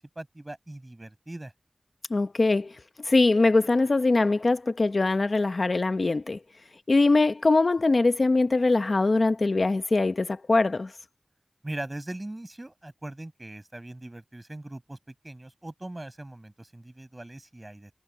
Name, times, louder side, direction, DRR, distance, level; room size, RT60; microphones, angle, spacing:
voice 1, 0.2-1.5 11.6-15.0 15.2-17.9, right 1 dB, 30° right, 7.4 m, -40 dB
voice 2, 2.1-6.4 6.9-10.9, left 3 dB, 60° left, 0.8 m, -22 dB
wide cardioid pair, 65°, 0 cm